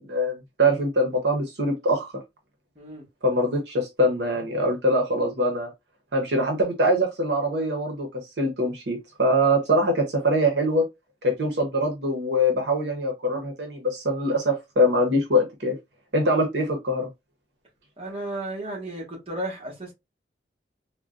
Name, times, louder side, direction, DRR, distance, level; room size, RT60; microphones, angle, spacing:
voice 1, 0.0-2.1 3.2-5.7 6.1-10.9 11.2-15.8 16.1-17.1, equal, 75° right, 0.8 m, -23 dB
voice 2, 18.0-19.9, right 1 dB, 30° right, 1.3 m, -33 dB
3.6 x 2.2 x 2.5 m
head